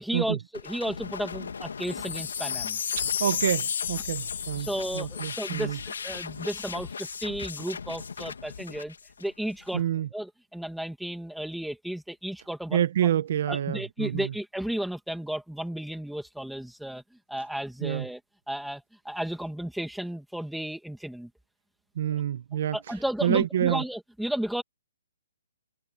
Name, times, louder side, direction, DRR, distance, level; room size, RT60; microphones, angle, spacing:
voice 1, 0.0-2.8 4.5-13.1 13.5-17.0 17.3-18.2 18.5-21.3 22.1-22.2 22.7-24.6, right 1 dB, ahead, 2.4 m, -33 dB
sound 1, 0.5-9.8, left 6 dB, 75° left, 3.0 m, -39 dB
Wind chime, 1.8-6.2 6.7-6.8, left 8 dB, 45° left, 1.7 m, -33 dB
voice 2, 3.0-4.7 4.9-5.8 9.7-10.1 12.7-14.3 17.8-18.0 22.0-22.8 23.2-23.8, right 10 dB, 40° right, 1.2 m, -27 dB
hypercardioid pair, 175°, 0 cm